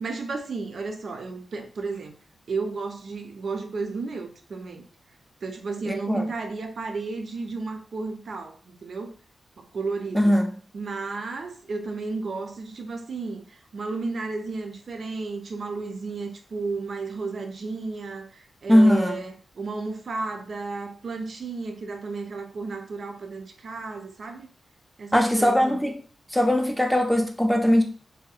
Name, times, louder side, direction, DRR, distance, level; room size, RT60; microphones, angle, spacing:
voice 1, 0.0-2.1 2.5-4.8 5.4-9.1 9.6-10.4 10.7-24.5 25.0-25.8, right 3 dB, 60° right, 0.4 m, -33 dB
voice 2, 5.9-6.2 10.1-10.5 18.7-19.2 25.1-25.9 26.3-27.8, equal, ahead, 0.4 m, -20 dB
2.7 x 2.0 x 2.3 m
wide cardioid pair, 105°, 0 cm